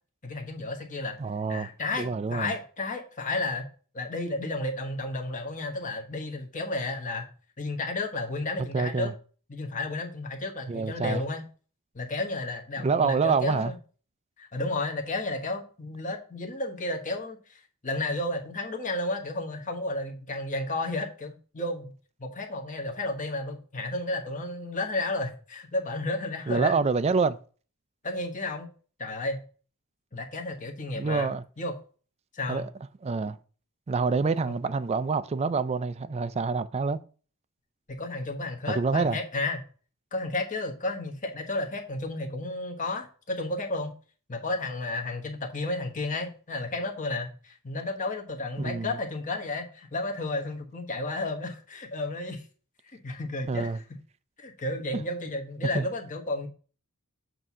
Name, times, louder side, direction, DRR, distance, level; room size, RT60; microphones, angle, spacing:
voice 1, 0.2-1.2 1.5-3.7 3.9-7.3 7.6-9.1 9.5-11.4 11.9-13.7 14.4-21.9 22.2-26.7 28.0-28.7 29.0-29.4 30.1-31.3 31.6-31.7 32.3-32.7 38.0-39.6 40.1-43.9 44.3-52.4 53.0-53.8 54.4-56.5, left 2 dB, 35° left, 1.1 m, -32 dB
voice 2, 1.2-1.7 1.9-2.5 8.7-9.1 10.7-11.2 12.8-13.7 26.5-27.4 31.0-31.4 32.5-32.7 33.0-33.4 33.9-37.0 38.7-39.2 48.6-49.0 53.5-53.8 54.9-55.0 55.7-55.9, right 4 dB, 30° right, 0.3 m, -27 dB
7.6 x 2.8 x 6.0 m
head